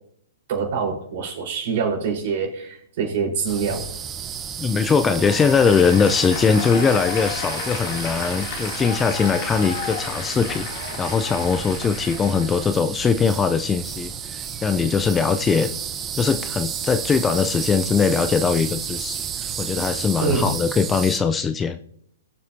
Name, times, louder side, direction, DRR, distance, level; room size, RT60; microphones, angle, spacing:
voice 1, 0.5-3.9 20.2-20.5, right 5 dB, 50° right, 0 dB, 4.6 m, -25 dB
sound 1, 3.5-21.2, right 8 dB, 20° right, 1.0 m, -32 dB
voice 2, 4.6-10.7 11.0-15.7 16.2-21.8, left 5 dB, 15° left, 10 dB, 0.6 m, -21 dB
Applause, 5.2-12.7, left 6 dB, 45° left, 3.0 m, -32 dB
21.5 x 7.7 x 2.9 m, 0.68 s
hypercardioid pair, 120°, 0 cm